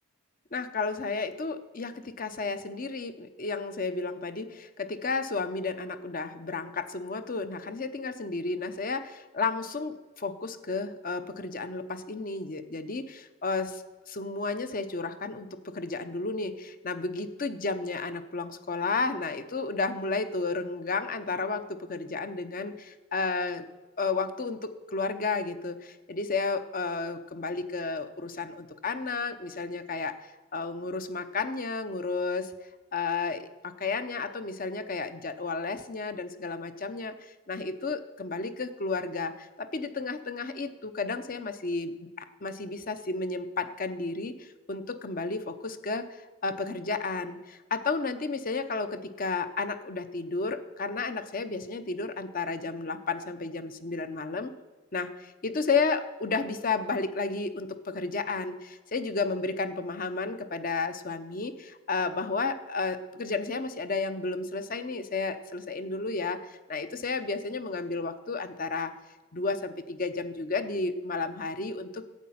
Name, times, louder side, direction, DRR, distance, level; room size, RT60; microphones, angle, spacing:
voice 1, 0.5-23.6 24.0-30.1 30.5-32.5 32.9-54.5 54.9-68.9 69.3-72.0, left 4 dB, 40° left, 10 dB, 0.7 m, -32 dB
12.0 x 8.5 x 5.7 m, 1.2 s
head